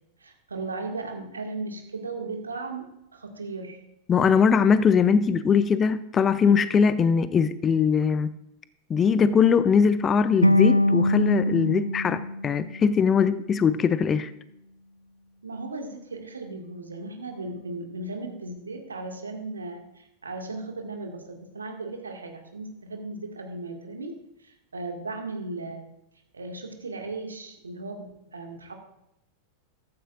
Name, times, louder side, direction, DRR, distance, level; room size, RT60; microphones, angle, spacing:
voice 1, 0.2-3.8 15.4-25.8 26.3-28.7, right 3 dB, 75° right, 3 dB, 2.0 m, -36 dB
voice 2, 4.1-8.3 8.9-14.3, left 6 dB, 25° left, 14 dB, 0.6 m, -21 dB
sound 1, 10.4-13.5, left 1 dB, 85° left, 0.3 m, -24 dB
14.5 x 13.5 x 2.5 m, 0.83 s
figure-of-eight pair, 90°, 0 cm